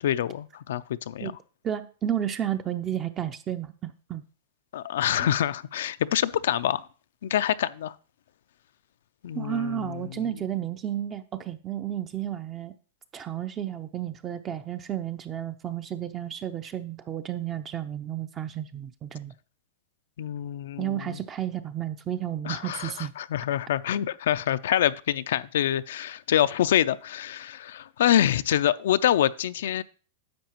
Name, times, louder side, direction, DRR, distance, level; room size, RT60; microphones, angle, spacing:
voice 1, 0.0-1.3 4.7-6.9 7.2-7.9 9.2-10.3 20.2-21.2 22.5-29.8, left 11 dB, 75° left, 0.4 m, -26 dB
voice 2, 1.6-4.2 5.2-5.3 9.3-12.7 13.1-19.3 20.8-23.1, right 10 dB, 25° right, 0.5 m, -32 dB
10.5 x 7.0 x 3.0 m
supercardioid pair, 145°, 0 cm